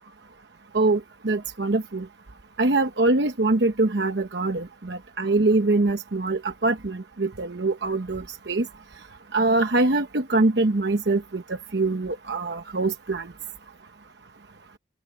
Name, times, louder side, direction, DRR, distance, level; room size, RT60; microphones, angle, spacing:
voice 1, 0.7-2.1 2.6-8.7 9.3-11.4 11.7-13.3, right 2 dB, 80° right, 1.0 m, -23 dB
open air
head